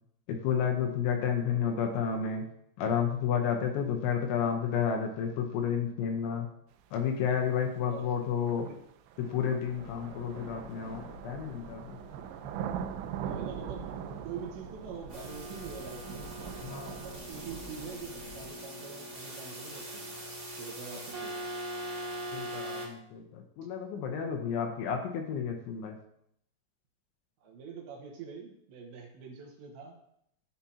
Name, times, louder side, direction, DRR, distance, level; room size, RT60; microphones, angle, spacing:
voice 1, 0.3-2.4 2.8-6.5 6.9-8.7 9.2-12.0 16.6-17.0 22.3-26.0, left 7 dB, 75° left, 3 dB, 3.0 m, -31 dB
sound 1, 7.4-7.5 8.5-18.0, right 8 dB, 90° right, 2.5 m, -42 dB
sound 2, 9.6-18.5, equal, 10° right, 1.2 m, -51 dB
voice 2, 13.1-14.0 14.2-16.3 17.0-20.1 20.6-21.4 23.6-23.7 27.4-30.0, right 6 dB, 70° right, -1 dB, 3.3 m, -44 dB
sound 3, 15.1-22.9, right 1 dB, 50° right, 0.8 m, -41 dB
16.0 x 5.9 x 2.8 m, 0.73 s
omnidirectional pair, 5.8 m